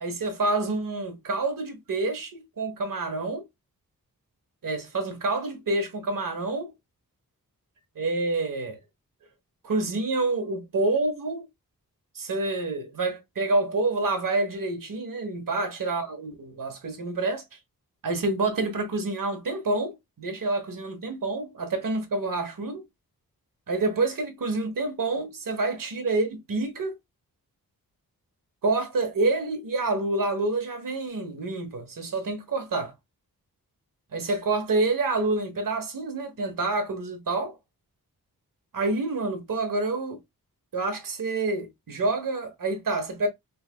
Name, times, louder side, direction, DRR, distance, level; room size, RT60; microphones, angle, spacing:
voice 1, 0.0-3.4 4.6-6.7 7.9-8.8 9.6-11.5 12.1-17.6 18.0-22.8 23.7-26.9 28.6-32.9 34.1-37.6 38.7-40.2 40.7-43.3, right 3 dB, 65° right, 1.2 m, -28 dB
5.5 x 2.3 x 2.3 m
wide cardioid pair, 110°, 36 cm